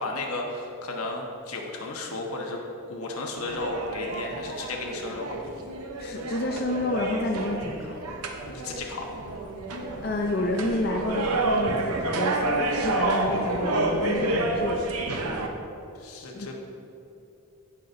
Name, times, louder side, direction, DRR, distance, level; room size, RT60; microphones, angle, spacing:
voice 1, 0.0-2.6 2.9-5.4 8.4-9.0 13.0-13.8 16.0-16.5, left 2 dB, 85° left, 1 dB, 1.2 m, -33 dB
sound 1, 3.4-15.5, right 2 dB, 85° right, 0.8 m, -29 dB
voice 2, 6.0-8.0 10.0-12.6 12.8-14.8 16.3-16.5, left 2 dB, 45° left, 0 dB, 0.5 m, -29 dB
16.0 x 5.8 x 2.7 m, 2.7 s
head